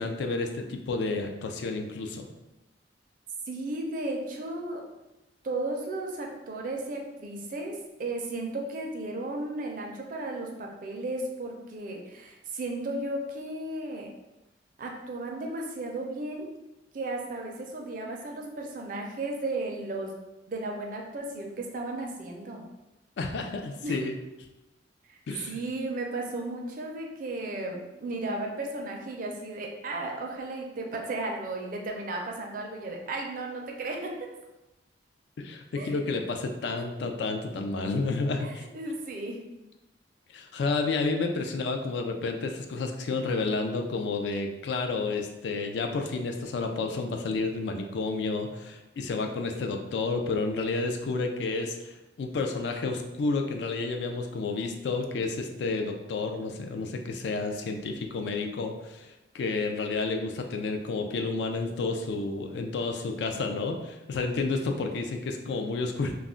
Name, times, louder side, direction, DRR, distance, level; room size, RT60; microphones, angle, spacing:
voice 1, 0.0-2.3 23.2-24.2 25.3-25.6 35.4-38.7 40.3-66.1, left 3 dB, 70° left, 4 dB, 0.3 m, -30 dB
voice 2, 3.5-4.8 5.4-14.1 14.8-16.5 16.9-20.1 20.5-22.6 23.8-24.0 25.1-25.2 25.4-34.1 35.8-35.9 36.7-36.9 38.4-39.4, right 2 dB, 50° right, 1 dB, 0.4 m, -34 dB
2.3 x 2.0 x 3.6 m, 0.99 s
head